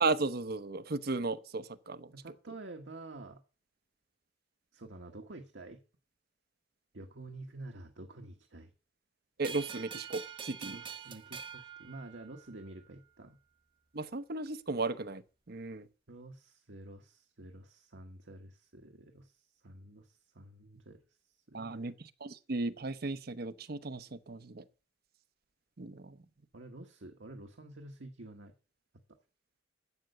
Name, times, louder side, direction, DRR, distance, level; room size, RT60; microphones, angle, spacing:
voice 1, 0.0-2.1 9.4-10.8 13.9-15.2 15.5-15.8 21.5-21.9 22.2-24.6 25.8-26.2, right 3 dB, 55° right, 0.8 m, -35 dB
voice 2, 2.1-3.4 4.7-5.8 6.9-8.7 10.7-13.4 16.1-21.0 21.5-21.9 26.5-28.5, right 2 dB, 70° right, 1.4 m, -49 dB
sound 1, 9.4-12.7, right 7 dB, 25° right, 0.7 m, -45 dB
12.5 x 8.0 x 6.7 m
head